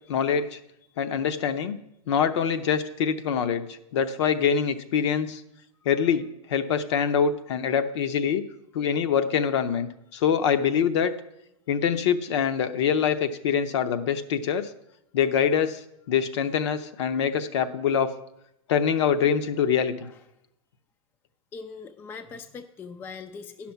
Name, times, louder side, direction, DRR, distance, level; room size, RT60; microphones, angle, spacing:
voice 1, 0.1-0.6 1.0-1.8 2.1-3.7 3.9-5.4 5.9-8.4 8.7-11.1 11.7-14.7 15.1-15.8 16.1-18.1 18.7-19.9, left 7 dB, 55° left, 9 dB, 0.7 m, -24 dB
voice 2, 21.5-23.7, left 5 dB, 10° left, 9 dB, 0.3 m, -41 dB
10.5 x 5.9 x 5.7 m, 0.82 s
figure-of-eight pair, 110°, 18 cm